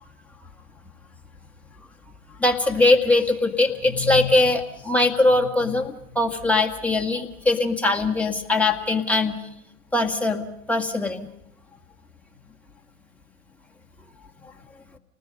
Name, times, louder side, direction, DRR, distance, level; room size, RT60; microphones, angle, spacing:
voice 1, 2.4-9.3 9.9-10.4 10.7-11.3, left 2 dB, 5° left, 1 dB, 2.0 m, -21 dB
29.5 x 20.0 x 5.4 m, 0.78 s
hypercardioid pair, 125°, 44 cm